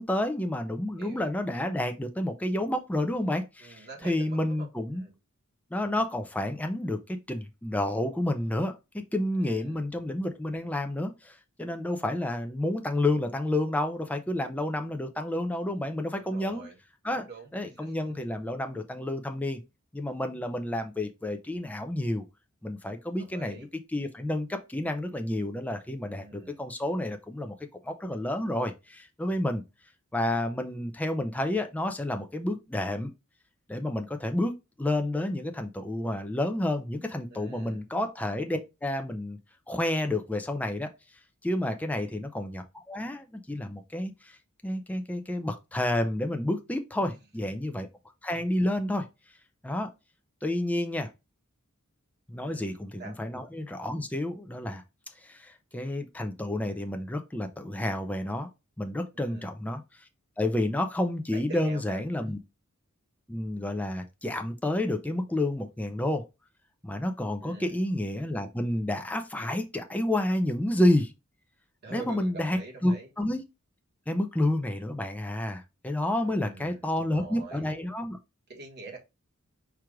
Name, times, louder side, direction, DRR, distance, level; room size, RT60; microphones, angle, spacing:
voice 1, 0.0-5.0 5.7-8.7 9.1-16.6 17.0-19.6 19.9-22.2 22.6-23.6 23.9-27.5 27.8-29.6 30.1-33.1 33.7-34.5 34.8-39.4 39.7-40.9 41.4-44.4 44.6-47.9 48.2-49.1 49.6-49.9 50.4-51.1 52.3-54.8 55.2-58.5 58.8-59.8 60.4-62.4 63.3-66.3 66.8-71.1 71.9-73.4 74.1-78.2, left 1 dB, 5° left, 0.5 m, -30 dB
voice 2, 1.0-1.3 3.6-4.7 4.9-5.2 9.4-9.8 16.1-16.7 17.1-18.2 23.2-23.7 26.1-26.6 37.3-37.8 41.8-42.1 47.0-47.1 52.4-52.7 53.0-53.2 59.1-59.5 61.3-62.3 67.4-67.8 71.8-73.1 76.1-77.7 78.5-79.0, right 3 dB, 50° right, 1.4 m, -45 dB
4.6 x 2.4 x 4.6 m
head